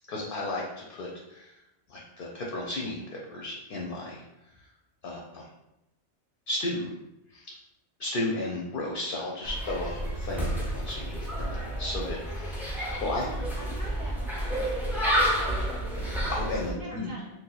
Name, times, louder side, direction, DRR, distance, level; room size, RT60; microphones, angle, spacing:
voice 1, 0.1-1.5 1.9-4.2 4.5-4.7 5.0-5.5 6.5-6.9 7.3-7.5 8.0-13.3 16.3-17.1, left 2 dB, 60° left, -2 dB, 0.6 m, -34 dB
sound 1, 9.4-16.7, right 1 dB, 5° right, 0.3 m, -30 dB
voice 2, 13.1-14.9 15.2-16.3 16.7-17.3, right 1 dB, 60° right, -4 dB, 0.7 m, -44 dB
2.7 x 2.4 x 3.9 m, 0.93 s
omnidirectional pair, 1.2 m